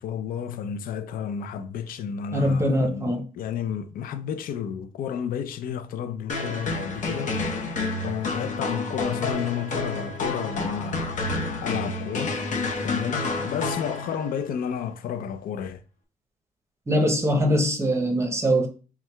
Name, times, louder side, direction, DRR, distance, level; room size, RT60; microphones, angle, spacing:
voice 1, 0.0-7.6 8.0-11.2 11.6-12.4 12.8-15.8, left 8 dB, 75° left, 0.4 m, -31 dB
voice 2, 2.3-3.2 16.9-18.7, equal, 20° right, 0.7 m, -22 dB
sound 1, 6.3-14.4, left 3 dB, 60° left, 0.8 m, -29 dB
4.4 x 3.5 x 2.2 m
cardioid pair, 115°, 15 cm